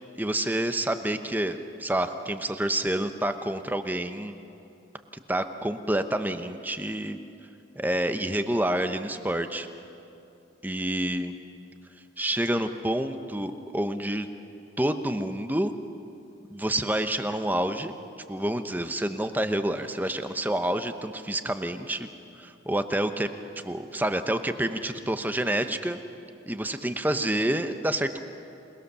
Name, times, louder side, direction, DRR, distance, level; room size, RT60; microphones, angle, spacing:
voice 1, 0.2-4.3 5.3-7.2 7.8-9.7 10.6-11.3 12.2-14.3 14.8-15.7 16.5-17.9 18.3-22.1 22.4-23.3 23.6-26.0 26.5-28.2, right 1 dB, 10° right, 8 dB, 0.8 m, -28 dB
27.5 x 20.0 x 6.9 m, 2.7 s
head